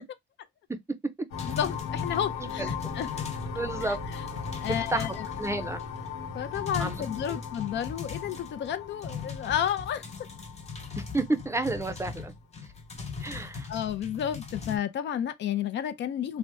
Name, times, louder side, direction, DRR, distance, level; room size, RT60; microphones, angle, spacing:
sound 1, 1.3-11.8, left 6 dB, 90° left, 1.1 m, -38 dB
voice 1, 1.4-3.3 4.6-5.3 6.3-10.0 13.7-16.4, left 9 dB, 65° left, 0.5 m, -31 dB
sound 2, 1.4-3.6 3.8-5.8 6.2-6.3 6.5-8.7 9.0-14.8, left 5 dB, 30° left, 0.9 m, -39 dB
voice 2, 3.5-4.0 4.7-5.8 6.8-7.4 11.0-12.3 13.2-13.7, right 2 dB, 15° right, 0.5 m, -31 dB
2.7 x 2.1 x 3.4 m
cardioid pair, 90°, 20 cm